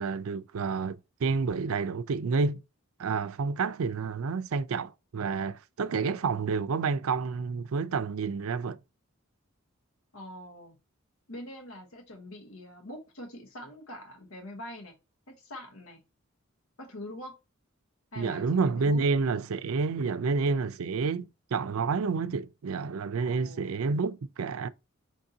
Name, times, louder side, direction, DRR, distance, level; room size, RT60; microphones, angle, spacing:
voice 1, 0.0-2.6 3.0-8.8 18.2-24.7, right 4 dB, 85° right, 0.4 m, -29 dB
voice 2, 10.1-10.8 11.3-14.9 15.3-16.0 16.8-17.4 18.1-19.0 23.2-23.8, left 1 dB, 80° left, 1.0 m, -44 dB
5.2 x 2.7 x 3.7 m
head